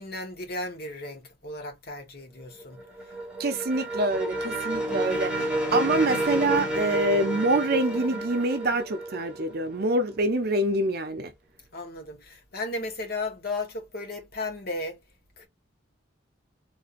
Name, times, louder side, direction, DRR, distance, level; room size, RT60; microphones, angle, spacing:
voice 1, 0.0-2.8 11.7-15.0 15.4-15.5, left 2 dB, 50° left, 1.1 m, -35 dB
sound 1, 2.4-10.2, right 1 dB, 5° right, 1.2 m, -30 dB
voice 2, 3.4-5.5 5.7-11.3, right 2 dB, 50° right, 0.6 m, -25 dB
3.3 x 2.7 x 2.4 m
head